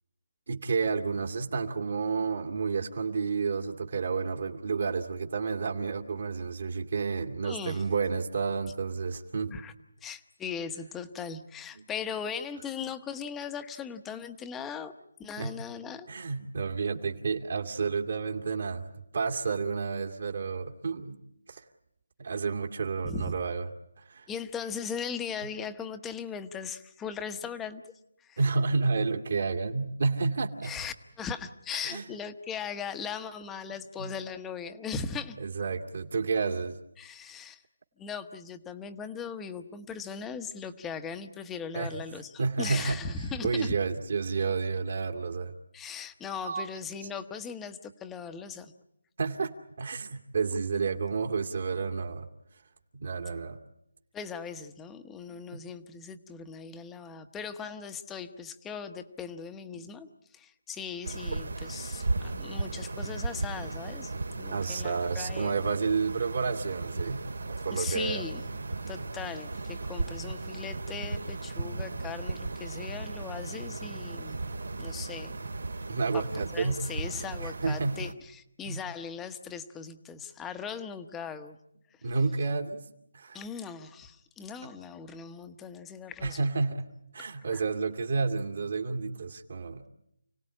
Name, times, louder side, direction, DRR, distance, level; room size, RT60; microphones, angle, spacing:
voice 1, 0.5-9.5 11.8-11.9 15.4-15.5 16.1-18.9 19.1-21.2 21.5-21.6 22.2-23.7 24.0-24.3 28.4-30.7 31.8-32.0 34.0-34.1 35.4-36.8 41.7-41.9 42.4-43.0 43.4-45.5 46.4-46.6 49.2-52.3 52.9-53.6 55.3-55.6 59.7-59.9 64.5-68.2 75.9-76.8 77.4-78.0 78.7-78.8 82.0-82.8 83.1-83.4 86.2-86.9 87.1-89.9, right 4 dB, 55° right, 3 dB, 2.3 m, -30 dB
voice 2, 7.4-7.8 9.5-9.7 10.0-14.9 15.2-16.1 23.0-23.3 24.3-27.8 28.2-28.4 30.6-35.4 37.0-37.6 38.0-43.7 45.7-48.7 54.1-60.1 60.3-64.1 64.4-65.7 67.7-68.4 68.9-74.4 74.8-75.3 76.1-81.6 83.3-86.4 87.5-87.6, left 6 dB, 5° left, 9 dB, 1.0 m, -39 dB
sound 1, 61.0-78.1, right 3 dB, 80° right, 2.4 m, -36 dB
29.5 x 18.5 x 9.9 m, 0.79 s
figure-of-eight pair, 170°, 0 cm